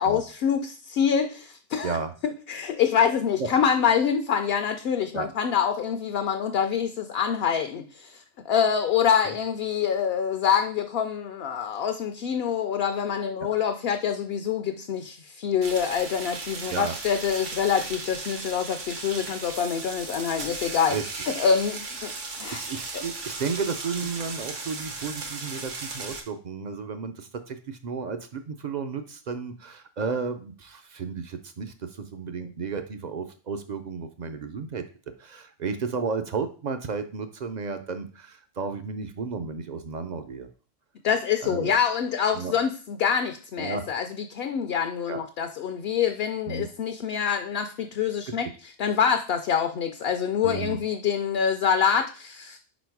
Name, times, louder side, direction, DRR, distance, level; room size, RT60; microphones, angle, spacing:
voice 1, 0.0-2.0 2.5-22.1 22.4-22.6 32.4-32.5 41.0-52.6, left 7 dB, 65° left, 7 dB, 0.7 m, -26 dB
sound 1, 15.6-26.2, right 3 dB, 75° right, 1.4 m, -36 dB
voice 2, 22.5-34.8 35.2-40.5 41.4-41.7 42.3-42.5 43.6-43.8 45.1-45.2 46.5-46.7 48.3-48.4 50.4-50.8, right 5 dB, 55° right, 8 dB, 0.5 m, -33 dB
5.1 x 4.2 x 4.5 m, 0.39 s
omnidirectional pair, 1.2 m